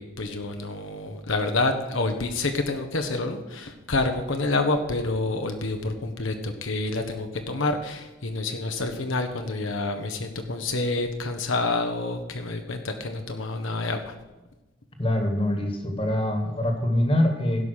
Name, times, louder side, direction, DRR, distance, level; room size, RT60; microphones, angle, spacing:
voice 1, 0.0-14.1, left 2 dB, 75° left, 5 dB, 1.1 m, -28 dB
voice 2, 15.0-17.7, left 1 dB, 25° left, 5 dB, 1.6 m, -24 dB
16.0 x 5.7 x 6.6 m, 1.1 s
head